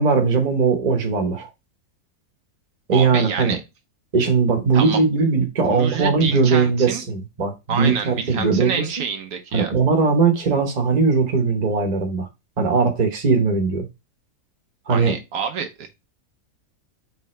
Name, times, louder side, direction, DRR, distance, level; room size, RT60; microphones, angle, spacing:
voice 1, 0.0-1.5 2.9-3.6 4.1-8.9 9.5-12.3 12.6-13.9 14.9-15.1, right 4 dB, 30° right, 1.0 m, -19 dB
voice 2, 2.9-3.6 4.7-5.0 5.6-7.0 7.7-9.7 14.9-16.1, right 6 dB, 75° right, 1.1 m, -28 dB
4.6 x 3.3 x 3.1 m
omnidirectional pair, 1.6 m